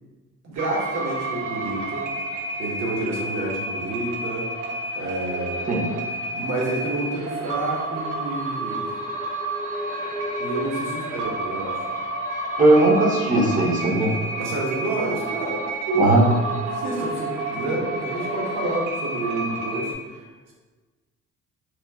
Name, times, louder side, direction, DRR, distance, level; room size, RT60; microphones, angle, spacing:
voice 1, 0.4-5.6 6.3-8.9 10.4-11.8 14.4-16.3 16.6-20.2, right 2 dB, 60° right, -3 dB, 1.0 m, -29 dB
sound 1, 0.6-19.9, right 2 dB, 80° right, 0.6 m, -30 dB
voice 2, 12.6-14.1 15.9-16.2, right 2 dB, 25° right, -3 dB, 0.7 m, -18 dB
3.0 x 2.1 x 3.4 m, 1.3 s
cardioid pair, 90°, 30 cm